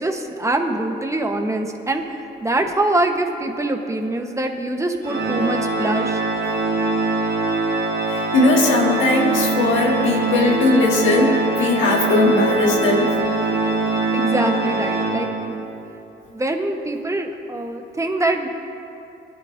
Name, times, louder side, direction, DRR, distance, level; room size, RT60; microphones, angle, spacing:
voice 1, 0.0-6.2 14.1-15.6 16.3-18.5, right 2 dB, 15° right, 4 dB, 1.1 m, -24 dB
Organ, 5.0-15.7, right 3 dB, 55° right, 1.6 m, -22 dB
voice 2, 8.1-13.1, left 2 dB, 80° left, -1 dB, 1.6 m, -18 dB
20.0 x 11.5 x 2.7 m, 2.8 s
cardioid pair, 90°, 20 cm